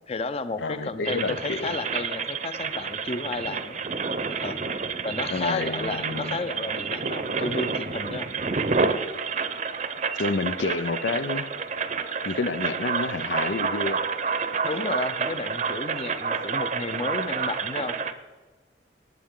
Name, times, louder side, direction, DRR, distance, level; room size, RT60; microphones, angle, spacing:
voice 1, 0.1-3.8 4.3-4.6 5.0-8.3 14.6-18.0, left 3 dB, 35° left, 0.6 m, -32 dB
voice 2, 0.6-1.8 5.3-6.4 10.2-11.5 12.2-14.1, left 3 dB, 90° left, 0.6 m, -29 dB
sound 1, 1.0-18.1, right 5 dB, 40° right, 0.7 m, -29 dB
19.0 x 8.7 x 3.8 m
head